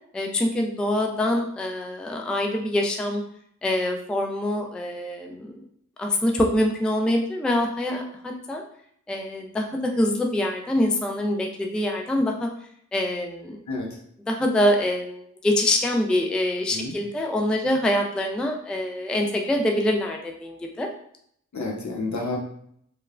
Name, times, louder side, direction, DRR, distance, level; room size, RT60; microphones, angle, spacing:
voice 1, 0.1-3.2 3.6-5.6 6.0-8.6 9.1-12.5 12.9-13.6 14.3-20.9, left 1 dB, 5° left, 2 dB, 0.3 m, -25 dB
voice 2, 13.7-14.0 16.7-16.9 21.5-22.4, left 2 dB, 65° left, 0 dB, 0.8 m, -30 dB
3.0 x 2.1 x 2.4 m, 0.69 s
cardioid pair, 45°, 31 cm